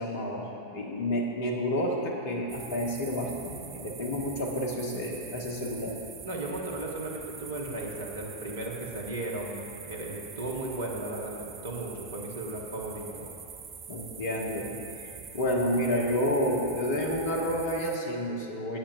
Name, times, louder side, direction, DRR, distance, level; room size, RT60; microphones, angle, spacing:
voice 1, 0.0-6.0 13.9-14.7 15.0-15.1 15.3-18.8, equal, 50° left, 0 dB, 1.2 m, -30 dB
sound 1, 2.5-18.0, right 6 dB, 25° right, 0.7 m, -45 dB
voice 2, 6.2-13.3, right 2 dB, 70° right, -1 dB, 1.2 m, -36 dB
14.5 x 8.7 x 2.7 m, 2.7 s
figure-of-eight pair, 90°, 0 cm